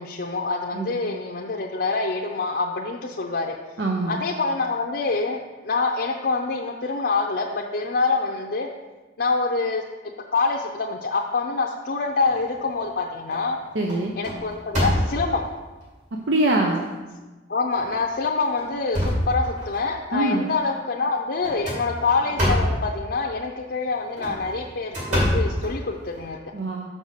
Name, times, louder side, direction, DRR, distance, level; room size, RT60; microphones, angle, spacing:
voice 1, 0.0-3.6 4.1-5.4 5.6-8.7 9.2-9.8 10.3-13.6 14.2-15.4 17.5-26.4, left 3 dB, 65° left, 0 dB, 0.6 m, -26 dB
voice 2, 3.8-4.2 13.7-14.1 16.3-16.8 20.1-20.5 26.5-26.9, right 2 dB, 80° right, 0 dB, 0.7 m, -23 dB
sound 1, 12.3-12.9 13.3-13.6 13.9-15.5 16.2-16.3 16.7-16.8 17.7-18.0 18.4-19.9 21.4-22.9 24.0-26.3, equal, 45° right, 2.5 m, -26 dB
5.4 x 5.2 x 6.5 m, 1.2 s
head